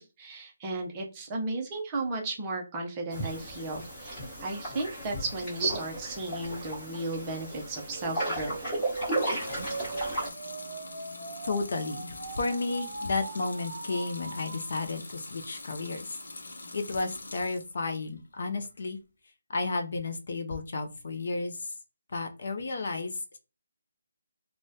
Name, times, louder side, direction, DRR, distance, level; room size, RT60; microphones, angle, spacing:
voice 1, 0.0-8.6, right 2 dB, 15° right, 0 dB, 0.5 m, -34 dB
sound 1, 3.1-10.3, right 1 dB, 15° left, 1.0 m, -35 dB
sound 2, 7.9-14.9, right 4 dB, 65° right, 0.5 m, -40 dB
Water tap faucet / Sink (filling or washing) / Liquid, 8.8-17.8 18.2-18.9, left 2 dB, 80° left, 0.7 m, -44 dB
voice 2, 11.4-16.2 16.7-19.0 19.5-21.7 22.1-23.4, left 3 dB, 45° left, 7 dB, 0.4 m, -32 dB
3.4 x 2.0 x 2.6 m, 0.31 s
hypercardioid pair, 180°, 0 cm